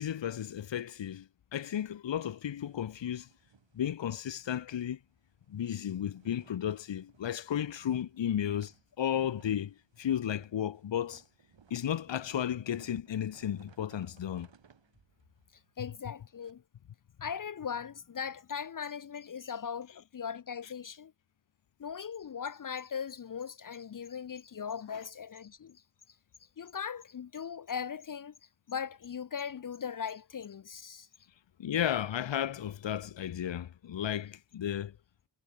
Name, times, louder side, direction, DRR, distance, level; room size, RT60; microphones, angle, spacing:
voice 1, 0.0-3.3 3.7-5.0 5.5-11.2 11.7-14.5 31.6-34.9, left 10 dB, 75° left, 0.9 m, -34 dB
sound 1, 2.3-4.5 4.9-5.0 5.3-16.5, right 6 dB, 80° right, 4.9 m, -62 dB
voice 2, 15.8-16.6 17.2-21.1 21.8-25.8 26.6-28.3 28.7-31.1, left 7 dB, 45° left, 0.6 m, -39 dB
wide cardioid pair, 130°, 44 cm